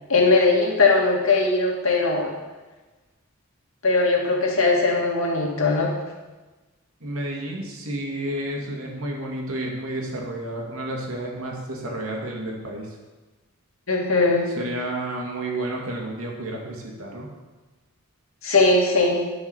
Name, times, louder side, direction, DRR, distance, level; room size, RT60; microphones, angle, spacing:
voice 1, 0.1-2.3 3.8-5.9 13.9-14.5 18.4-19.2, left 3 dB, 70° left, -1 dB, 2.1 m, -19 dB
voice 2, 7.0-12.9 14.6-17.3, right 1 dB, 75° right, -1 dB, 2.3 m, -31 dB
11.0 x 6.4 x 5.6 m, 1.2 s
head